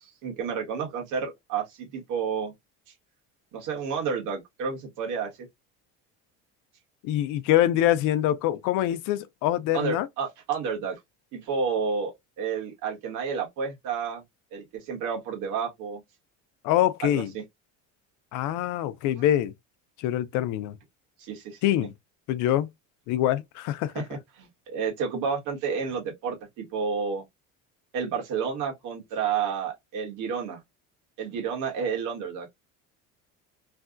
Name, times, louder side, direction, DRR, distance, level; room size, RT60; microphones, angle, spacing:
voice 1, 0.0-2.5 3.5-5.3 9.7-11.0 11.3-14.2 14.5-16.0 17.0-17.4 19.1-19.3 21.2-21.6 23.9-27.2 27.9-30.6 31.2-32.5, right 6 dB, 65° right, 1.5 m, -30 dB
voice 2, 7.0-10.1 16.6-17.3 18.3-19.5 20.0-20.8 21.6-21.9 22.3-22.7 23.1-23.9, left 12 dB, 65° left, 0.5 m, -24 dB
3.3 x 2.3 x 2.5 m
cardioid pair, 150°, 33 cm